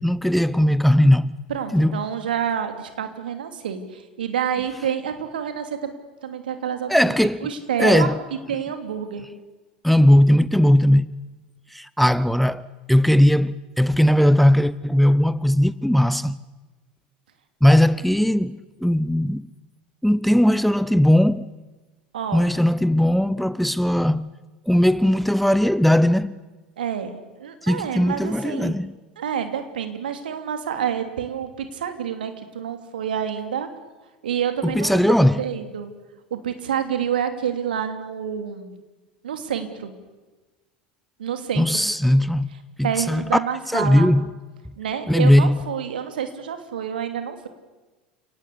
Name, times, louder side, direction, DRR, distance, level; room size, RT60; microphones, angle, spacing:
voice 1, 0.0-1.3 1.7-2.1 6.9-7.5 7.8-8.2 9.8-11.1 11.7-16.4 17.6-19.5 20.0-21.5 22.3-24.3 24.7-26.4 27.6-28.9 34.6-35.4 41.6-42.5 42.8-43.2 43.7-44.2 45.1-45.6, left 1 dB, ahead, 0.7 m, -18 dB
voice 2, 1.5-5.9 6.2-7.1 7.4-8.1 8.5-9.3 22.1-22.5 26.8-28.7 29.2-33.7 34.2-35.9 36.3-38.8 39.2-39.9 41.2-41.6 42.8-44.1 44.8-47.5, right 8 dB, 70° right, 2.9 m, -28 dB
29.5 x 18.5 x 8.5 m
figure-of-eight pair, 80°, 5 cm